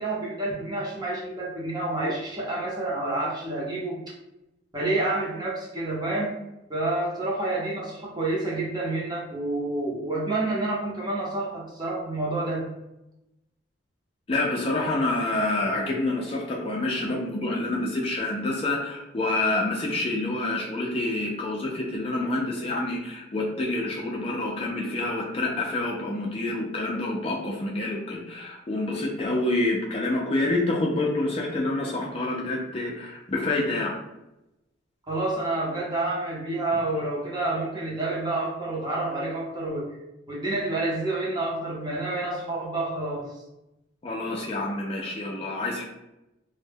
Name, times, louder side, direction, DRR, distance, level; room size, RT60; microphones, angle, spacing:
voice 1, 0.0-4.0 4.7-6.4 6.7-12.7 35.1-39.9 40.3-43.3, right 2 dB, 20° right, -4 dB, 0.6 m, -28 dB
voice 2, 14.3-34.0 44.0-45.8, left 2 dB, 30° left, -2 dB, 0.3 m, -27 dB
2.1 x 2.1 x 3.3 m, 0.92 s
head